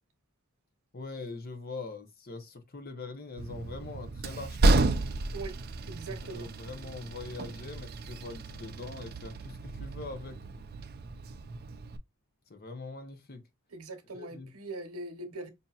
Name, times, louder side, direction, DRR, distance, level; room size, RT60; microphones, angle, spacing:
voice 1, 0.9-4.9 6.3-10.4 12.5-13.4 14.1-14.5, left 3 dB, 45° left, 0.7 m, -42 dB
Train, 3.4-12.0, right 2 dB, 45° right, 0.4 m, -32 dB
voice 2, 5.9-6.5 13.7-15.5, right 2 dB, 80° right, 1.0 m, -41 dB
5.3 x 2.8 x 2.3 m
head